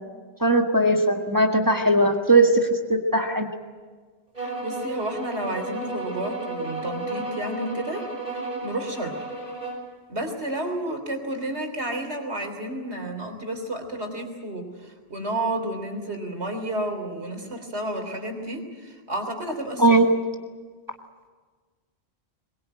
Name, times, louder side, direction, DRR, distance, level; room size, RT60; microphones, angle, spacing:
voice 1, 0.4-3.5 19.8-20.0, right 2 dB, 20° right, 3 dB, 1.6 m, -19 dB
sound 1, 4.3-9.9, right 2 dB, 40° right, 6.4 m, -33 dB
voice 2, 4.4-8.0 8.3-9.2 10.1-20.0, right 1 dB, 85° right, 4 dB, 3.7 m, -31 dB
22.0 x 21.5 x 9.0 m, 1.5 s
omnidirectional pair, 1.1 m